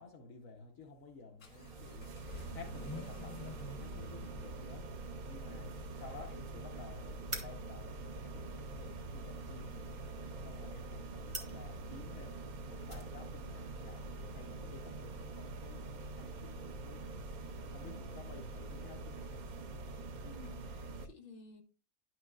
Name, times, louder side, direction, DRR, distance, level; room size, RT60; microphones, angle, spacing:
voice 1, 0.0-19.5, left 4 dB, 65° left, 1.3 m, -54 dB
Vehicle / Accelerating revving vroom, 0.8-20.6, left 1 dB, 90° left, 2.0 m, -55 dB
sound 1, 1.4-21.1, right 3 dB, 70° right, 0.4 m, -45 dB
sound 2, 3.2-16.4, right 2 dB, 20° right, 1.3 m, -53 dB
voice 2, 20.2-21.6, left 2 dB, 35° left, 1.4 m, -54 dB
10.5 x 6.3 x 2.3 m
omnidirectional pair, 1.6 m